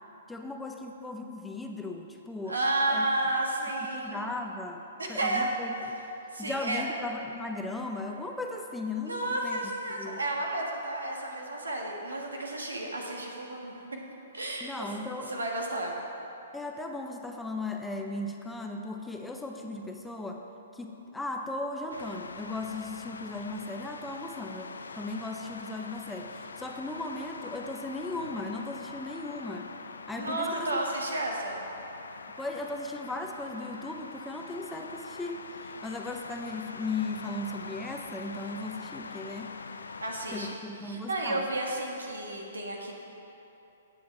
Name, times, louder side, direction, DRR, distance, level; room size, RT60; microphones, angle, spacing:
voice 1, 0.3-2.6 2.9-3.1 3.9-6.0 6.4-9.6 9.8-10.2 14.6-15.3 16.5-20.4 20.7-29.7 30.1-30.8 32.4-39.5 40.3-41.5, left 2 dB, 5° left, 2 dB, 0.7 m, -37 dB
voice 2, 2.5-4.1 5.0-5.5 6.3-6.8 9.0-13.7 14.3-14.7 15.3-16.0 30.1-31.6 40.0-40.5 40.8-42.9, right 2 dB, 90° right, 0 dB, 1.6 m, -31 dB
sound 1, 21.9-40.6, left 4 dB, 80° left, 0.5 m, -44 dB
17.0 x 7.1 x 3.4 m, 3.0 s
hypercardioid pair, 125°, 0 cm